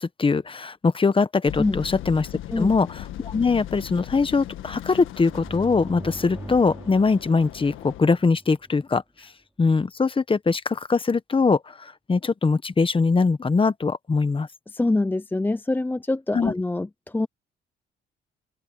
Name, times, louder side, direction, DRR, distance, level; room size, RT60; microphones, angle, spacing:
voice 1, 0.0-2.3 2.6-9.0 9.6-14.5 16.3-16.5, left 4 dB, 25° left, 1.2 m, -22 dB
sound 1, 1.5-8.0, left 13 dB, 90° left, 1.6 m, -38 dB
sound 2, 5.3-8.9, right 1 dB, 10° right, 6.3 m, -41 dB
voice 2, 14.7-17.3, left 2 dB, 10° left, 0.5 m, -25 dB
open air
cardioid pair, 90°, 20 cm